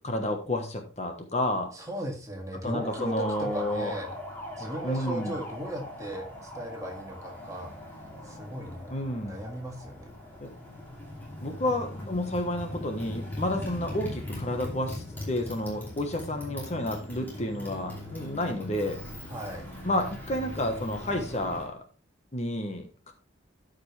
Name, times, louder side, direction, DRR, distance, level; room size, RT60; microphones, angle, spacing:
voice 1, 0.0-1.7 2.6-3.9 4.8-5.3 8.9-9.4 10.4-10.5 11.4-19.0 19.8-21.8 22.3-23.1, left 1 dB, 35° left, 5 dB, 1.2 m, -30 dB
voice 2, 1.7-4.2 4.6-7.7 8.2-8.9 9.2-10.1 19.3-19.7, right 1 dB, 15° right, 1 dB, 1.8 m, -37 dB
Motorcycle, 2.7-21.7, left 1 dB, 10° left, 2.8 m, -40 dB
13.0 x 5.3 x 3.3 m, 0.35 s
head